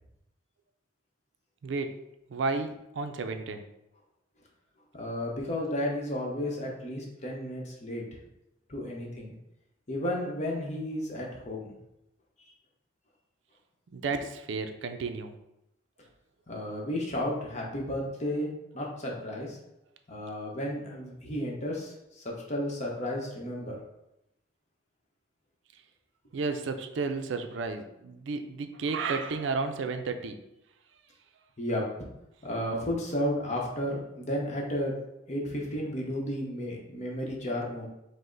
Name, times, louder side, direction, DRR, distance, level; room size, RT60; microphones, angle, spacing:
voice 1, 1.6-3.7 13.9-15.3 26.3-30.4, right 4 dB, 70° right, 7 dB, 0.4 m, -32 dB
voice 2, 4.9-8.0 8.7-9.3 9.9-11.7 16.5-18.5 18.7-19.6 20.1-23.8 31.6-31.8 32.4-34.9 35.3-37.9, left 1 dB, 35° left, -1 dB, 0.8 m, -33 dB
5.2 x 2.1 x 3.8 m, 0.87 s
head